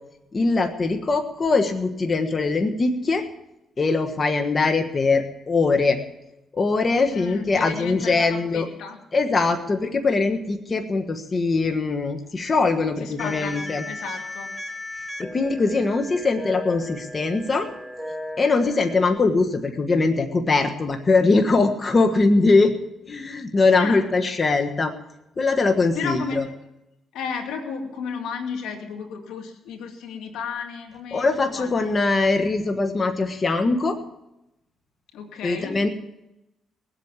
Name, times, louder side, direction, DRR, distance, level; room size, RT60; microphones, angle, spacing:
voice 1, 0.3-3.2 3.8-6.0 6.5-8.7 9.1-13.8 15.2-17.7 18.4-22.7 23.1-24.9 25.4-26.4 31.1-34.0 35.4-35.9, left 3 dB, 35° left, 6 dB, 1.5 m, -21 dB
voice 2, 7.1-9.0 13.0-14.5 23.8-24.0 25.9-26.5 27.1-31.9 35.1-35.9, left 5 dB, 85° left, 3 dB, 2.7 m, -33 dB
sound 1, 13.2-19.2, left 1 dB, 5° right, 1.3 m, -36 dB
20.5 x 8.2 x 7.4 m, 0.88 s
cardioid pair, 90°, 0 cm